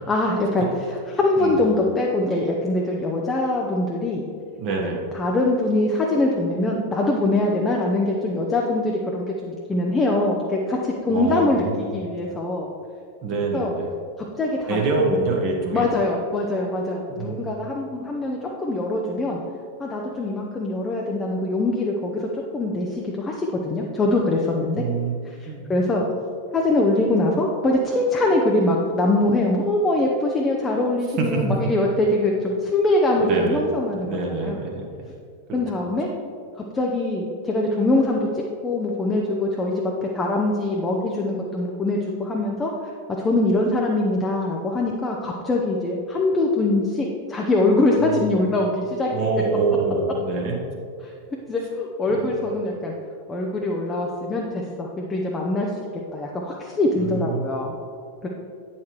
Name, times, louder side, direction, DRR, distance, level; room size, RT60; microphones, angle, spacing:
voice 1, 0.1-4.3 5.1-11.6 11.9-12.7 13.5-13.7 14.4-15.1 15.7-19.4 19.8-24.8 25.4-26.1 26.5-34.6 35.5-36.1 36.7-39.8 40.1-42.7 43.2-49.1 51.0-51.2 51.5-52.9 53.3-55.7 56.1-57.7 58.2-58.3, left 2 dB, 15° left, -1 dB, 0.7 m, -23 dB
voice 2, 4.6-5.0 11.1-11.9 13.2-13.9 14.7-15.9 17.1-17.5 24.8-25.7 31.2-31.5 33.2-33.6 33.9-34.9 35.5-35.6 48.0-48.4 49.1-50.5 52.1-52.4 57.0-57.5, right 3 dB, 40° right, 0 dB, 1.1 m, -26 dB
8.5 x 5.8 x 3.1 m, 2.3 s
figure-of-eight pair, 90°, 0 cm